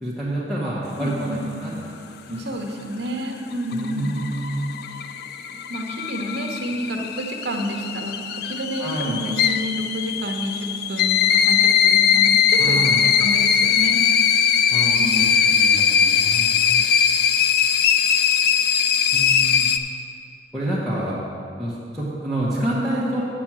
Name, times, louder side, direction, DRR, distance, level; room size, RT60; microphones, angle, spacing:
voice 1, 0.0-2.0 2.3-2.4 3.7-4.6 8.8-9.2 12.6-13.0 14.7-16.8 19.1-19.7 20.5-21.2 21.6-23.2, right 1 dB, ahead, -9 dB, 1.1 m, -28 dB
voice 2, 0.9-1.6 2.3-4.1 5.7-14.0 14.8-15.4, equal, 60° right, 2 dB, 1.0 m, -29 dB
sound 1, 3.5-19.8, left 7 dB, 55° left, 0.4 m, -20 dB
7.5 x 6.0 x 7.3 m, 2.5 s
head